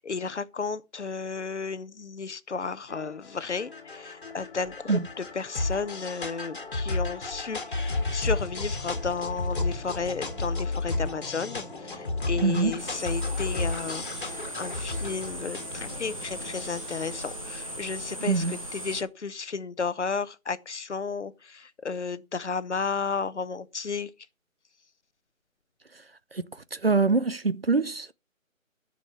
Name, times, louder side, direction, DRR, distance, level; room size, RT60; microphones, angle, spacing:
voice 1, 0.0-24.1, left 5 dB, 55° left, 0.8 m, -33 dB
sound 1, 2.9-18.4, left 3 dB, 40° left, 1.8 m, -33 dB
Bird vocalization bird call bird song, 8.9-17.2, right 3 dB, 85° right, 2.9 m, -51 dB
voice 2, 12.4-12.7 18.2-18.6 26.3-26.4 26.7-28.1, right 4 dB, 45° right, 0.5 m, -24 dB
sound 2, 12.8-19.0, right 1 dB, 25° right, 0.9 m, -38 dB
12.0 x 6.3 x 5.6 m
figure-of-eight pair, 165°, 41 cm